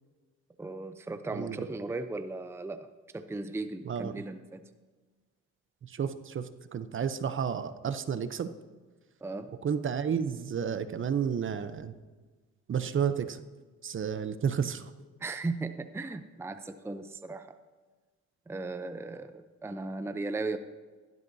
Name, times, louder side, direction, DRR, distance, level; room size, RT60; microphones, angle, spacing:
voice 1, 0.6-2.9 3.1-4.6 9.2-9.5 15.2-17.5 18.5-20.6, right 3 dB, 10° right, 9 dB, 0.6 m, -36 dB
voice 2, 5.9-6.4 6.7-8.5 9.6-11.9 12.7-13.4 13.8-14.8, right 7 dB, 40° right, 11 dB, 0.7 m, -31 dB
15.5 x 12.0 x 2.7 m, 1.4 s
cardioid pair, 90°, 30 cm